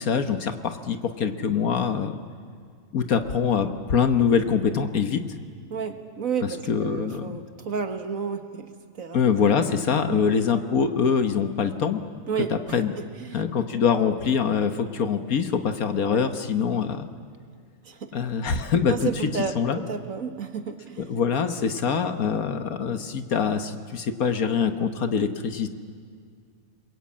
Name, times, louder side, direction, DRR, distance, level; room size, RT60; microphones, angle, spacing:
voice 1, 0.0-2.2 2.9-5.2 6.7-7.4 9.1-12.0 12.5-12.9 13.3-17.1 18.1-19.1 19.5-19.8 21.1-25.7, left 6 dB, 65° left, 8 dB, 1.6 m, -24 dB
voice 2, 5.7-8.7 9.0-9.2 10.1-10.3 12.3-13.4 16.1-16.3 17.9-18.1 18.9-21.1, right 6 dB, 60° right, 7 dB, 1.9 m, -32 dB
29.5 x 22.0 x 8.7 m, 2.1 s
omnidirectional pair, 1.7 m